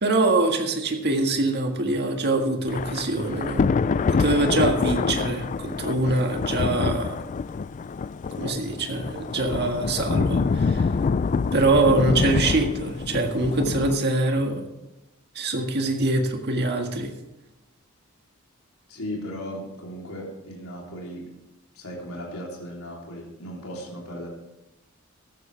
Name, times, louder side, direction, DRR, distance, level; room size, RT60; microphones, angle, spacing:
voice 1, 0.0-3.6 4.1-7.2 8.4-10.9 11.5-14.6 15.4-17.1, right 2 dB, 50° right, 3 dB, 1.7 m, -24 dB
Thunder / Rain, 2.7-14.0, left 5 dB, 35° left, 0.3 m, -26 dB
voice 2, 18.9-21.3 21.7-24.3, equal, 75° left, -3 dB, 3.3 m, -36 dB
15.5 x 13.0 x 3.4 m, 0.96 s
head